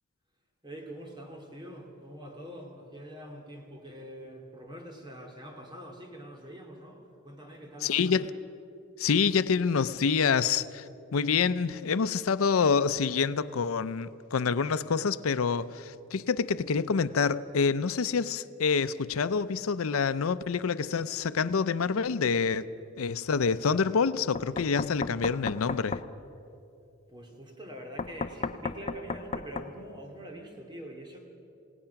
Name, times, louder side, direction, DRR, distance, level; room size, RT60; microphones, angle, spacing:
voice 1, 0.6-8.2 27.1-31.3, equal, 20° right, 2.6 m, -44 dB
voice 2, 7.8-8.3 9.0-22.7 23.0-26.0, left 5 dB, 85° left, 0.5 m, -27 dB
Knock, 24.3-26.1 28.0-29.7, left 4 dB, 30° left, 0.5 m, -34 dB
28.5 x 17.0 x 5.8 m
head